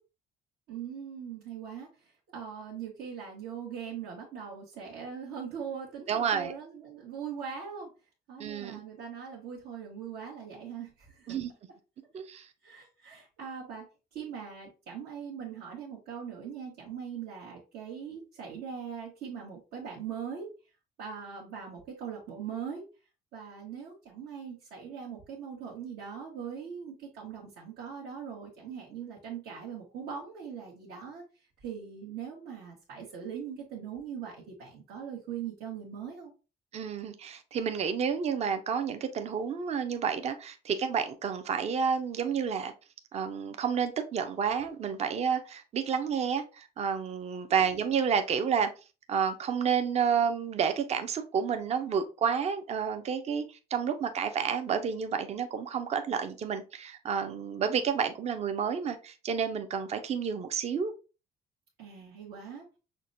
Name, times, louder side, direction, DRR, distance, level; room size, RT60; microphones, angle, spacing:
voice 1, 0.7-7.9 8.3-11.4 12.6-13.8 14.1-20.5 21.0-22.8 23.3-36.3 47.5-47.8 61.8-62.6, right 7 dB, 80° right, 1.1 m, -41 dB
voice 2, 6.1-6.5 8.4-8.8 11.3-11.5 12.1-12.5 36.7-42.7 43.1-48.7 49.1-53.4 53.7-60.9, right 7 dB, 40° right, 0.5 m, -30 dB
5.8 x 2.1 x 2.5 m
cardioid pair, 110°, 17 cm